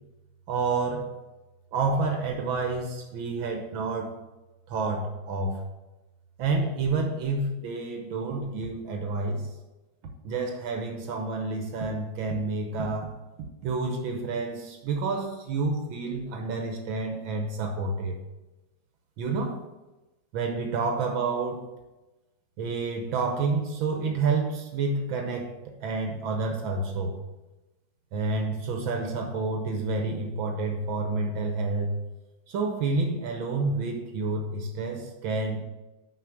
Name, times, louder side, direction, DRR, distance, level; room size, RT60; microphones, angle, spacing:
voice 1, 0.5-1.1 1.7-4.2 4.7-5.6 6.4-9.5 10.2-13.1 13.6-18.2 19.2-19.6 20.3-21.7 22.6-27.1 28.1-31.9 32.5-35.6, right 3 dB, 80° right, 3 dB, 1.7 m, -29 dB
6.1 x 5.4 x 5.8 m, 1.1 s
omnidirectional pair, 2.1 m